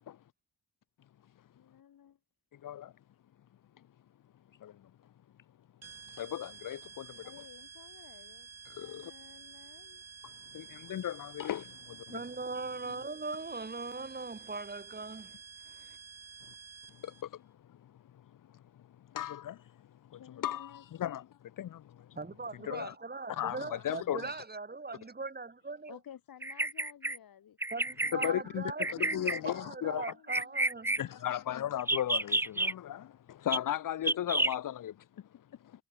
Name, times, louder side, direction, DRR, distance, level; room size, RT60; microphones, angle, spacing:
voice 1, 1.5-2.2 7.2-8.5 8.8-10.0 11.7-11.9 12.8-13.0 13.5-13.6 20.2-21.2 22.7-22.9 25.9-27.6 28.0-30.9, left 9 dB, 85° left, 6.2 m, -55 dB
sound 1, 5.8-17.2, right 5 dB, 45° right, 4.7 m, -51 dB
voice 2, 6.2-7.1 8.8-9.1 10.5-11.7 12.1-12.2 17.0-17.1 19.1-19.6 20.4-21.2 21.6-21.8 22.6-22.9 23.3-24.3 28.1-30.0 31.0-34.9, left 11 dB, 65° left, 0.9 m, -35 dB
voice 3, 12.1-15.3 15.7-16.0 22.2-26.0 27.7-31.0, right 3 dB, 30° right, 4.4 m, -40 dB
Bird vocalization bird call bird song, 26.4-27.2 27.6-28.3 28.8-29.4 30.0-31.0 31.8-32.7 33.5-33.6 34.0-34.5, right 2 dB, 5° right, 0.4 m, -30 dB
cardioid pair, 100°, 34 cm